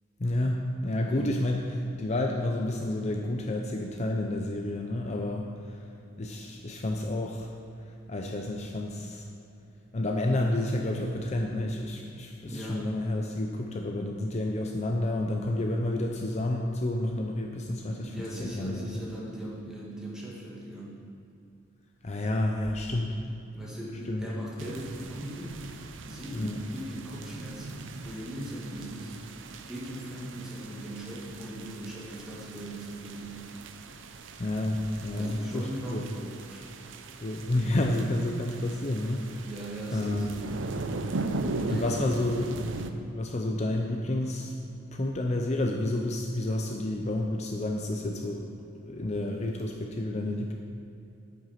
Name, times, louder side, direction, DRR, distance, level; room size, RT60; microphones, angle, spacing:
voice 1, 0.2-5.8 6.2-7.5 8.1-9.2 9.9-19.0 22.0-23.2 24.1-24.3 26.3-26.6 34.4-36.0 37.2-39.5 39.9-40.5 41.7-42.5 43.1-44.5 44.9-48.5 48.7-50.5, left 1 dB, 35° left, 1 dB, 0.6 m, -30 dB
voice 2, 0.9-1.4 12.4-12.9 17.8-21.0 23.5-25.6 26.0-29.2 29.7-33.5 35.1-36.7 39.4-40.6 41.6-42.2 42.6-42.8, right 1 dB, 5° right, -6 dB, 1.8 m, -40 dB
sound 1, 24.6-42.9, right 3 dB, 80° right, 0.6 m, -39 dB
9.1 x 6.0 x 5.7 m, 2.8 s
head